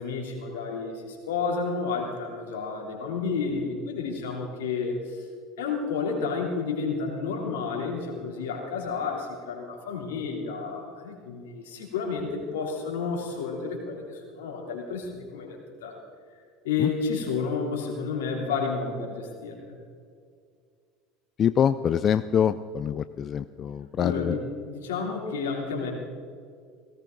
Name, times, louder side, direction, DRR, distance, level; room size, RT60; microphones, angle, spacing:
voice 1, 0.0-5.2 5.6-16.0 16.6-19.7 24.0-25.9, left 5 dB, 85° left, 0 dB, 3.3 m, -31 dB
voice 2, 21.4-24.4, left 8 dB, 40° left, 13 dB, 0.4 m, -25 dB
18.0 x 17.5 x 4.0 m, 2.2 s
hypercardioid pair, 85°, 0 cm